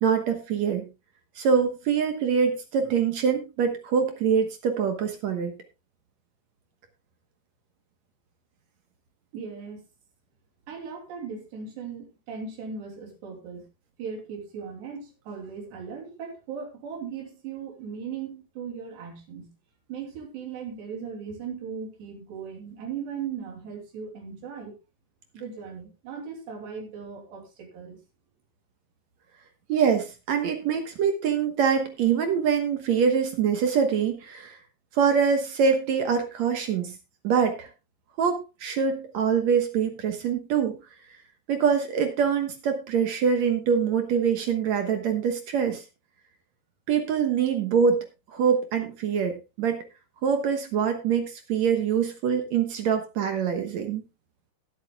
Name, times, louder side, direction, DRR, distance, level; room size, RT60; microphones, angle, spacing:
voice 1, 0.0-0.8 1.4-5.5 29.7-34.6 34.9-37.0 37.2-37.7 38.2-40.8 41.5-45.8 46.9-48.0 48.3-49.8 50.2-54.0, right 6 dB, 65° right, 6 dB, 1.8 m, -24 dB
voice 2, 9.3-9.8 10.7-13.6 14.0-19.5 19.9-24.7 25.3-28.0, right 6 dB, 90° right, 2 dB, 5.1 m, -38 dB
20.5 x 8.1 x 2.3 m, 0.27 s
omnidirectional pair, 4.7 m